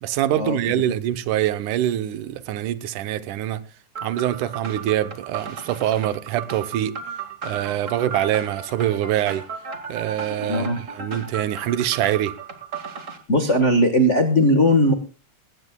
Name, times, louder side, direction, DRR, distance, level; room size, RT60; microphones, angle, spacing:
voice 1, 0.0-3.6 4.0-7.0 7.4-9.5 9.9-12.3, right 12 dB, 85° right, 2.4 m, -24 dB
sound 1, 4.0-13.2, right 5 dB, 30° right, 1.5 m, -35 dB
voice 2, 10.5-10.8 13.3-14.9, equal, 40° left, 1.0 m, -18 dB
20.5 x 16.5 x 2.2 m
omnidirectional pair, 3.5 m